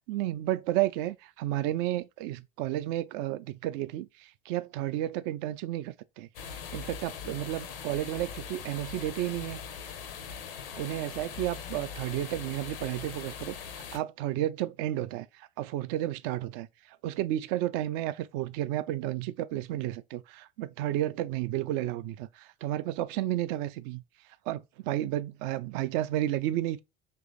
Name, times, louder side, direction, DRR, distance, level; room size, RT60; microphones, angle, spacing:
voice 1, 0.0-6.3 6.7-9.6 10.8-13.6 13.9-24.0 24.5-26.8, right 14 dB, 45° right, 0.4 m, -32 dB
sound 1, 6.3-14.0, left 7 dB, 70° left, 0.7 m, -41 dB
3.0 x 2.6 x 3.7 m
figure-of-eight pair, 70°, 29 cm